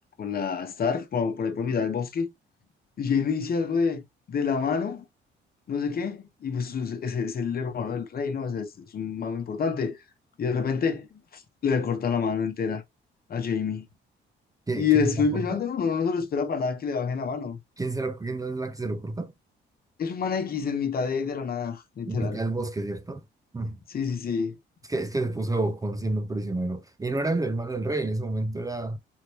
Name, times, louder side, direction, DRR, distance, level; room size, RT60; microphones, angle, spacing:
voice 1, 0.2-2.3 3.0-5.0 5.7-10.0 10.4-12.8 13.3-13.9 14.7-17.6 20.0-22.4 23.9-24.6, left 6 dB, 50° left, 1.0 m, -27 dB
voice 2, 14.7-15.2 15.5-15.6 17.8-19.3 22.1-23.2 23.5-23.8 24.9-29.0, right 2 dB, 15° right, 0.6 m, -29 dB
3.6 x 3.1 x 3.1 m
cardioid pair, 90°, 20 cm